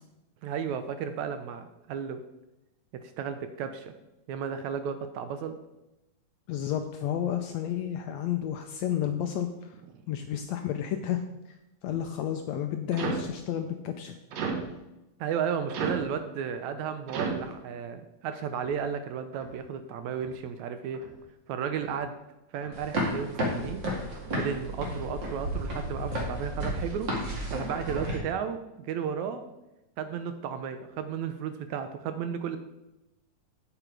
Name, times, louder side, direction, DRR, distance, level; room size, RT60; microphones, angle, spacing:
voice 1, 0.4-2.2 2.9-3.9 4.3-5.6 15.2-21.1 21.5-22.2 22.5-23.8 24.4-27.1 27.5-29.4 30.0-32.6, right 7 dB, 75° right, 9 dB, 1.8 m, -33 dB
voice 2, 6.5-9.8 10.1-11.2 11.8-14.1, left 10 dB, 80° left, 7 dB, 1.6 m, -31 dB
sound 1, 11.9-12.3 12.9-13.4 14.3-14.7 15.7-16.1 17.1-17.5 18.5-18.8 19.3-19.6 20.1-20.4 20.9-21.2 21.7-22.0 22.5-22.8 23.4-23.6 24.2-24.4, right 5 dB, 60° right, 2.0 m, -35 dB
sound 2, 22.7-28.2, equal, 40° right, 2.6 m, -32 dB
9.0 x 9.0 x 4.7 m, 0.94 s
omnidirectional pair, 3.7 m